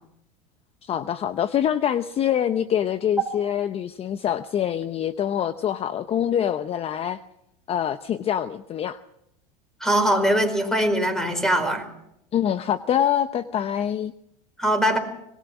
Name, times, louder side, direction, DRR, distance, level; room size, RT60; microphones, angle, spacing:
voice 1, 0.8-7.2 7.7-9.0 12.3-14.1, left 9 dB, 30° left, 12 dB, 0.8 m, -25 dB
voice 2, 9.8-11.9 14.6-15.0, right 1 dB, 5° left, 9 dB, 4.8 m, -21 dB
25.5 x 20.5 x 6.2 m, 0.79 s
supercardioid pair, 105°, 19 cm